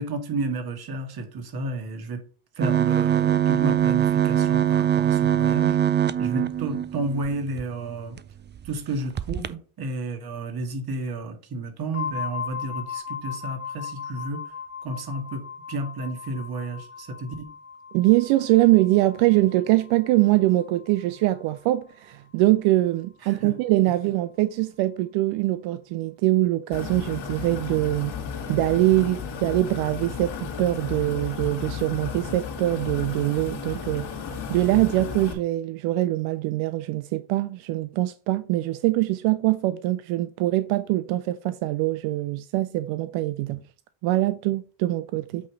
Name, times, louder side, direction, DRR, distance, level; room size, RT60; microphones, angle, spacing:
voice 1, 0.0-2.2 2.6-8.2 8.6-14.5 14.8-17.5 23.2-23.5, right 2 dB, 50° right, 1.9 m, -32 dB
sound 1, 2.6-7.6 8.2-8.3 8.6-8.7 9.2-9.5, right 10 dB, 25° right, 0.4 m, -22 dB
sound 2, 11.9-21.6, left 7 dB, 25° left, 1.5 m, -38 dB
voice 2, 17.9-28.1 28.5-43.6 44.0-45.5, right 17 dB, 85° right, 0.6 m, -23 dB
sound 3, 26.7-35.3, left 6 dB, 80° left, 1.9 m, -34 dB
8.3 x 3.2 x 5.1 m
supercardioid pair, 75°, 46 cm